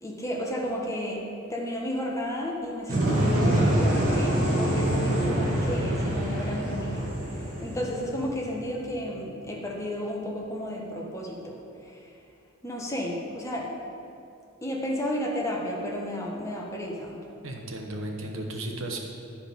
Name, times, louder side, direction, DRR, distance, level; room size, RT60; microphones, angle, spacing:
voice 1, 0.0-1.2 1.5-12.1 12.6-13.7 14.6-17.2, equal, 15° left, -2 dB, 1.0 m, -33 dB
sound 1, 2.9-8.8, right 1 dB, 40° right, 1.9 m, -25 dB
voice 2, 17.4-19.0, right 1 dB, 65° right, 2 dB, 1.0 m, -34 dB
11.0 x 5.0 x 5.1 m, 2.6 s
head